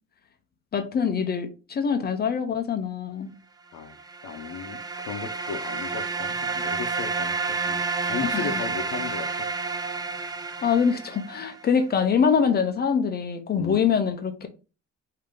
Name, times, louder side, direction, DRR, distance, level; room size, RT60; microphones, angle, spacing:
voice 1, 0.7-3.3 8.3-8.6 10.6-14.5, left 6 dB, 35° left, 0.6 m, -24 dB
sound 1, 3.9-11.6, right 4 dB, 15° right, 0.4 m, -30 dB
voice 2, 4.2-9.5 13.6-13.9, left 6 dB, 65° left, 0.8 m, -36 dB
5.0 x 2.8 x 3.6 m
cardioid pair, 130°, 29 cm